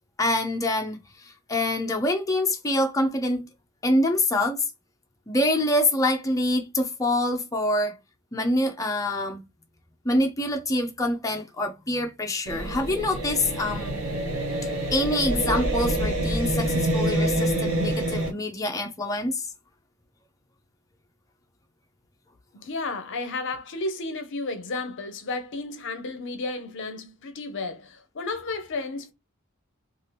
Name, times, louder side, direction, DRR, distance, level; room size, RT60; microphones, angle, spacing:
voice 1, 0.2-3.5 3.8-4.7 5.3-8.0 8.3-9.4 10.0-14.0 14.9-19.5, left 1 dB, 15° left, 0.5 m, -25 dB
sound 1, 12.5-18.3, right 1 dB, 75° right, 0.9 m, -26 dB
voice 2, 22.6-29.1, left 3 dB, 60° left, 0.6 m, -32 dB
2.7 x 2.5 x 3.2 m
head